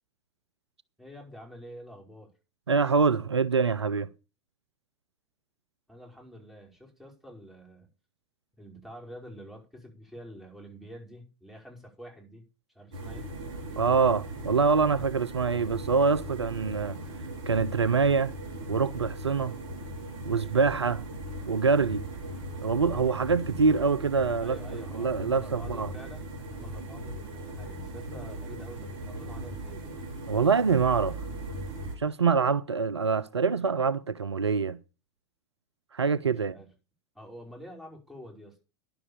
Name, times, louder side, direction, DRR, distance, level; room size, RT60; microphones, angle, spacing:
voice 1, 1.0-2.3 5.9-7.9 8.6-12.4 12.7-13.3 24.4-29.9 36.2-36.7 37.1-38.6, equal, ahead, 5.0 m, -47 dB
voice 2, 2.7-4.1 13.8-17.0 17.5-18.3 18.7-19.5 20.2-21.0 21.5-22.1 22.6-24.6 24.9-25.9 30.3-31.2 32.0-34.8 35.9-36.6, right 5 dB, 85° right, 0.5 m, -25 dB
sound 1, 12.9-32.0, right 1 dB, 45° right, 4.1 m, -39 dB
11.0 x 6.9 x 7.1 m
figure-of-eight pair, 90°, 14 cm